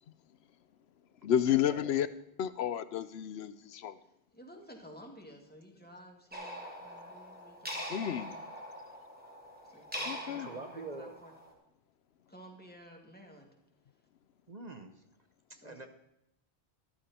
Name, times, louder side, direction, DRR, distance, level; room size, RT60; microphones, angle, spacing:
voice 1, 1.2-2.1 2.4-4.0 7.9-8.3 10.0-10.5, left 10 dB, 85° left, 14 dB, 0.9 m, -31 dB
voice 2, 4.3-8.4 9.7-11.3 12.3-13.5 15.5-15.9, equal, 10° left, 0 dB, 2.3 m, -54 dB
sound 1, 6.3-11.5, equal, 10° right, 2.5 m, -43 dB
voice 3, 10.4-11.1 14.5-15.0 15.5-15.9, right 3 dB, 45° right, 7 dB, 0.9 m, -45 dB
13.5 x 12.0 x 4.3 m, 0.83 s
omnidirectional pair, 1.0 m